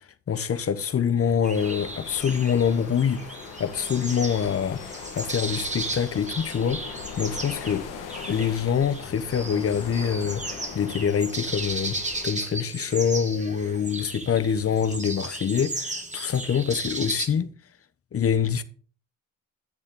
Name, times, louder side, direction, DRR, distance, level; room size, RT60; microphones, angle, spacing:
voice 1, 0.3-3.3 3.6-6.8 7.2-7.9 8.3-12.0 12.2-17.5 18.1-18.6, left 7 dB, 45° left, 1.0 m, -25 dB
sound 1, 1.4-17.3, right 2 dB, 20° right, 2.1 m, -35 dB
sound 2, 1.5-12.3, left 7 dB, 80° left, 1.5 m, -40 dB
9.7 x 7.2 x 3.8 m
supercardioid pair, 65°, 31 cm